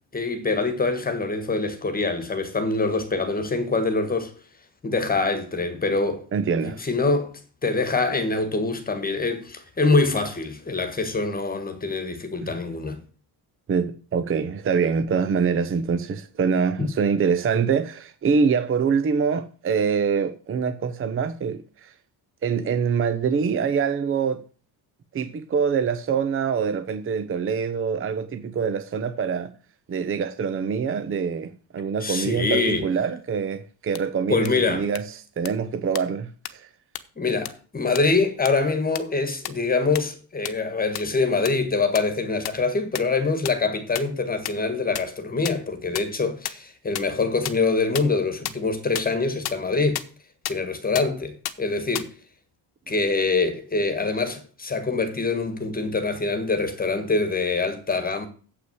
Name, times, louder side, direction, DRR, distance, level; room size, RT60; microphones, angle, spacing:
voice 1, 0.1-4.3 4.8-6.3 6.6-7.3 7.6-13.0 16.8-16.9 32.0-32.9 34.3-34.9 37.2-50.0 50.5-52.1 52.9-58.3, left 3 dB, 20° left, 1.5 m, -24 dB
voice 2, 6.3-6.8 12.4-12.5 13.7-21.9 22.4-24.4 25.1-29.5 29.9-35.1 35.4-36.7, right 6 dB, 30° right, 0.7 m, -25 dB
sound 1, 33.9-34.0 34.4-34.5 34.9-35.0 35.4-35.5 35.9-36.0 36.4-36.5 36.9-37.0 37.4-37.5 37.9-38.0 38.4-38.5 38.9-39.0 39.4-39.5 39.9-40.0 40.4-40.5 40.9-41.0 41.4-41.5 41.9-42.0 42.4-42.5 42.9-43.0 43.4-43.5 43.9-44.0 44.4-44.5 44.9-45.0 45.4-45.5 45.9-46.0 46.4-46.5 46.9-47.0 47.4-47.5 47.9-48.0 48.4-48.5 48.9-49.0 49.4-49.5 49.9-50.0 50.4-50.5 50.9-51.0 51.4-51.5 51.9-52.0, left 13 dB, 65° left, 1.0 m, -28 dB
8.0 x 5.8 x 7.8 m
cardioid pair, 150°, 41 cm